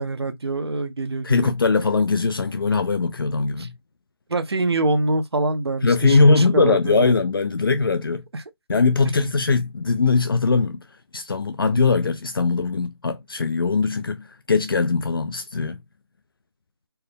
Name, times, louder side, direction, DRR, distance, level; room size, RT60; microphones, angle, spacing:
voice 1, 0.0-1.5 3.6-3.7 4.3-7.2 8.3-8.4 9.0-9.2, right 2 dB, 75° right, 0.8 m, -25 dB
voice 2, 1.2-3.7 5.8-8.2 8.7-10.8 11.1-15.8, left 4 dB, 60° left, 0.5 m, -20 dB
4.5 x 2.2 x 3.3 m
figure-of-eight pair, 170°, 13 cm